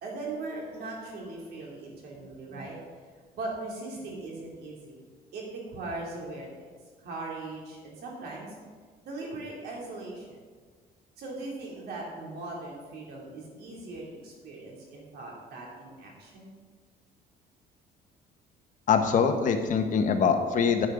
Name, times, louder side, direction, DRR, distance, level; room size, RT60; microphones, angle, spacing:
voice 1, 0.0-2.8 3.3-5.0 5.3-6.7 7.0-8.5 9.0-10.3 11.2-16.6, right 2 dB, 70° right, -2 dB, 3.0 m, -39 dB
voice 2, 18.9-20.9, left 6 dB, 50° left, 5 dB, 1.1 m, -23 dB
10.5 x 8.5 x 3.9 m, 1.5 s
cardioid pair, 110°, 17 cm